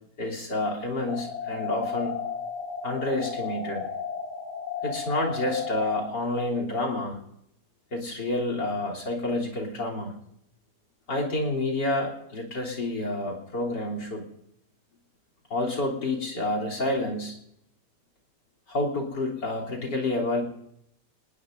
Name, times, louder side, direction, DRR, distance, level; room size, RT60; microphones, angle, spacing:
voice 1, 0.2-2.1 2.8-3.9 4.8-7.2 7.9-10.2 11.1-14.2 15.5-17.3 18.7-20.4, left 2 dB, 85° left, 2 dB, 4.1 m, -29 dB
sound 1, 1.1-6.1, left 6 dB, 65° left, 4.3 m, -34 dB
27.5 x 19.5 x 2.6 m, 0.75 s
omnidirectional pair, 1.8 m